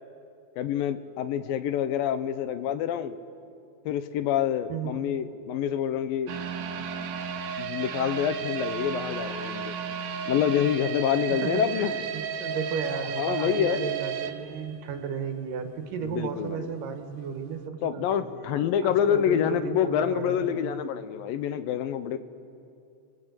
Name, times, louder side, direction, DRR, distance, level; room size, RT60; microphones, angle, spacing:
voice 1, 0.6-3.2 3.9-6.3 7.6-9.8 10.3-12.0 13.2-13.8 16.0-16.7 17.8-22.2, left 9 dB, 80° left, 11 dB, 2.6 m, -27 dB
voice 2, 4.7-5.0 11.3-11.9 12.1-18.2 18.8-20.7, right 6 dB, 70° right, 6 dB, 3.0 m, -34 dB
sound 1, 6.3-15.3 15.6-15.7 16.2-16.3, right 7 dB, 85° right, 3.2 m, -33 dB
30.0 x 21.0 x 8.2 m, 2.5 s
omnidirectional pair, 4.2 m